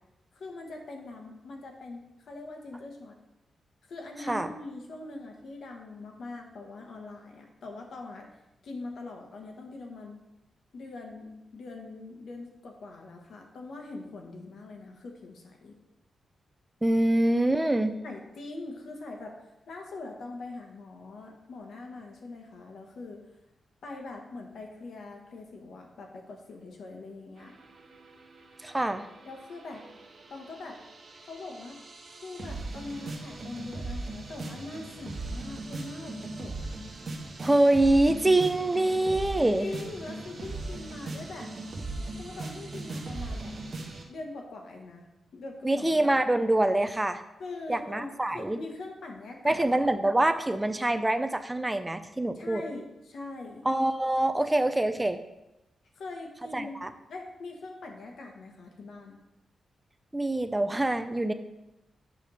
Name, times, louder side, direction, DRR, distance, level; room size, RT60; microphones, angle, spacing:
voice 1, 0.3-3.1 3.9-8.3 8.6-10.2 10.7-15.7 18.0-23.2 23.8-27.5 29.2-29.8 30.3-30.8 31.3-31.8 32.2-36.7 39.6-41.5 42.2-43.5 44.1-45.1 45.3-46.2 47.4-49.6 52.3-53.6 55.9-59.2, left 3 dB, 70° left, 2 dB, 1.4 m, -42 dB
voice 2, 16.8-18.0 28.6-29.1 37.4-39.7 45.6-47.2 47.7-48.6 49.4-52.6 53.6-55.2 56.5-56.9 60.1-61.3, right 1 dB, 10° right, 9 dB, 0.5 m, -25 dB
sound 1, 27.4-44.0, right 2 dB, 45° right, 1.3 m, -39 dB
8.9 x 3.6 x 6.3 m, 0.93 s
wide cardioid pair, 130°, 0 cm